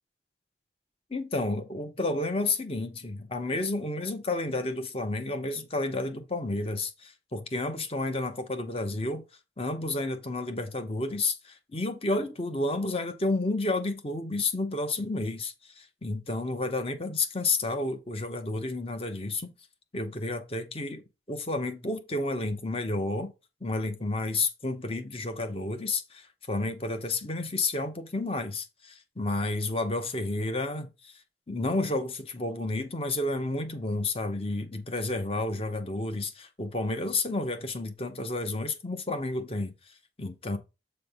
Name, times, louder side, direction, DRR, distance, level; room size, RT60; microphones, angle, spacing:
voice 1, 1.1-9.2 9.6-19.5 19.9-21.0 21.3-23.3 23.6-31.2 31.5-40.6, left 2 dB, 30° left, 0.8 m, -31 dB
7.8 x 3.2 x 5.5 m
head